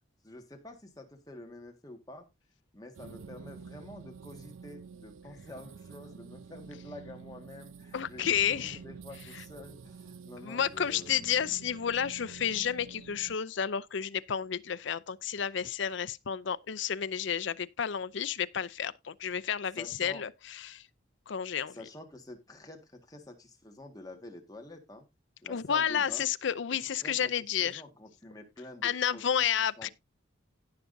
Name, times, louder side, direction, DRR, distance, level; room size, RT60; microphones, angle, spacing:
voice 1, 0.2-2.3 2.7-11.1 19.7-20.2 21.7-25.0 25.4-26.3 26.9-29.5 29.8-29.9, left 1 dB, 20° left, 1.7 m, -48 dB
sound 1, 2.9-13.4, right 5 dB, 80° right, 0.5 m, -49 dB
voice 2, 7.9-8.8 10.4-20.3 20.6-20.8 21.3-21.8 25.5-27.8 28.8-29.9, left 8 dB, 65° left, 0.5 m, -31 dB
17.5 x 5.8 x 2.6 m
head